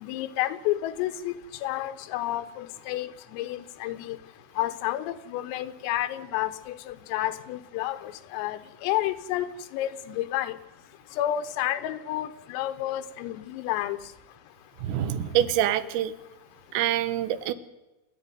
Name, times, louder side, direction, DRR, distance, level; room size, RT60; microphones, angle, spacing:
voice 1, 0.0-1.3 1.6-4.2 4.6-9.5 9.7-10.5 11.2-14.0, left 13 dB, 90° left, 11 dB, 3.7 m, -30 dB
voice 2, 14.8-16.1 16.7-17.5, right 11 dB, 90° right, 13 dB, 3.8 m, -25 dB
27.5 x 11.5 x 9.4 m, 1.0 s
omnidirectional pair, 5.8 m